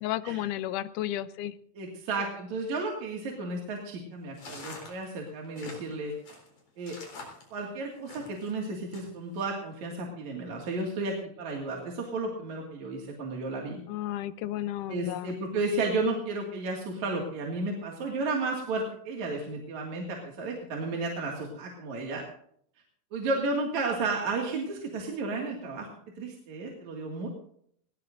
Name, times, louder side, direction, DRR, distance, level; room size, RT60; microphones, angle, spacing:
voice 1, 0.0-1.5 13.9-15.4, left 13 dB, 85° left, 14 dB, 2.2 m, -33 dB
voice 2, 1.7-6.4 6.8-7.0 7.5-13.8 14.9-22.2 23.1-25.9 26.2-27.3, right 3 dB, 65° right, 0 dB, 3.3 m, -33 dB
sound 1, 4.3-8.5 8.9-9.4, left 3 dB, 65° left, 5.3 m, -46 dB
20.5 x 18.5 x 2.6 m, 0.65 s
omnidirectional pair, 3.6 m